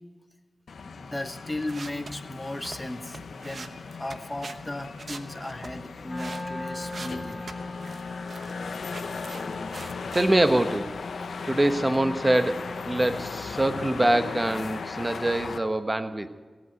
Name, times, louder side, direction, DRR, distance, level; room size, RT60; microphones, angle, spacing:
sound 1, 0.7-15.6, left 5 dB, 85° left, 0.8 m, -38 dB
voice 1, 0.8-7.5, left 1 dB, 25° left, 8 dB, 1.3 m, -36 dB
sound 2, 1.5-4.6 5.0-6.4 6.8-8.0 8.3-8.6 8.9-10.5, right 3 dB, 65° right, 0.9 m, -42 dB
Wind instrument woodwind instrument, 6.0-13.2, left 2 dB, 45° left, 1.6 m, -39 dB
voice 2, 10.1-10.9 11.4-16.3, right 1 dB, 25° right, 9 dB, 1.2 m, -24 dB
17.0 x 8.5 x 9.1 m, 1.4 s
cardioid pair, 40°, 0 cm